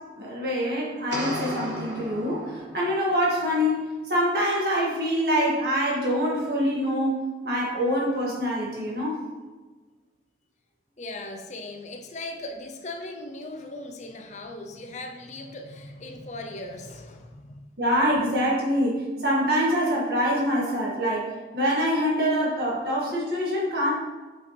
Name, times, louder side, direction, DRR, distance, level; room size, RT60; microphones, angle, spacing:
voice 1, 0.2-9.2 17.8-21.3 21.5-23.9, equal, 55° right, -5 dB, 2.0 m, -25 dB
sound 1, 1.1-3.0, equal, 75° right, 1.7 m, -34 dB
voice 2, 11.0-17.6, left 2 dB, 40° left, 4 dB, 0.6 m, -38 dB
7.7 x 5.3 x 3.3 m, 1.3 s
head